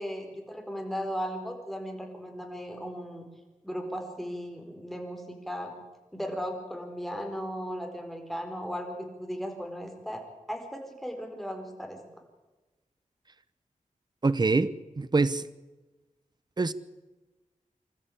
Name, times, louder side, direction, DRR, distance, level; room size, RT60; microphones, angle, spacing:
voice 1, 0.0-3.3 3.6-5.7 6.1-10.2 10.5-12.0, equal, ahead, 3 dB, 4.5 m, -36 dB
voice 2, 14.2-15.5 16.6-16.7, right 3 dB, 30° right, 15 dB, 0.8 m, -25 dB
26.5 x 13.5 x 8.6 m, 1.2 s
wide cardioid pair, 95°, 14 cm